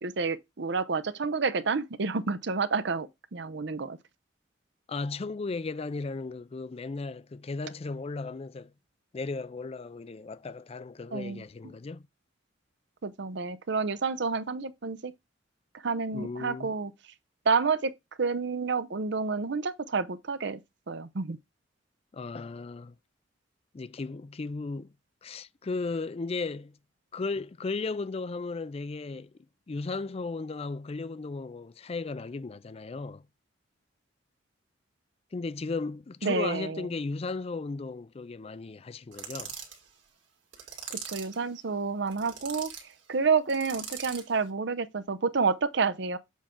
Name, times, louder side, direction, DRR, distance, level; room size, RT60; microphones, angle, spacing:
voice 1, 0.0-4.0 11.1-11.5 13.0-15.1 15.8-16.9 17.5-17.9 18.2-20.6 20.9-21.4 36.2-36.9 40.9-42.7 43.1-46.2, right 4 dB, 65° right, 0.7 m, -29 dB
voice 2, 4.9-8.7 9.1-12.0 16.1-16.7 22.1-22.9 23.7-24.9 25.2-26.7 27.1-29.3 29.7-33.2 35.3-39.5, left 3 dB, 30° left, 0.4 m, -35 dB
sound 1, 39.1-39.8 40.5-41.4 42.1-42.8 43.5-44.3, right 7 dB, 80° right, 2.1 m, -41 dB
7.4 x 4.3 x 3.7 m
head